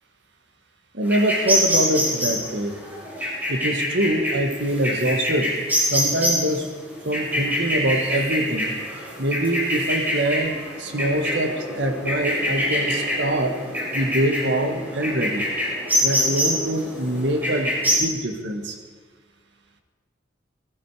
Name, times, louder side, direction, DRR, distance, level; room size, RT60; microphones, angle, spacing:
voice 1, 0.9-2.8 3.5-5.5 5.8-6.7 7.1-8.7 9.2-13.6 13.9-15.5 16.0-17.7 18.0-18.8, right 1 dB, 65° right, 5 dB, 1.7 m, -24 dB
sound 1, 1.0-17.9, equal, 10° right, 5.3 m, -25 dB
18.0 x 14.0 x 4.9 m, 1.5 s
head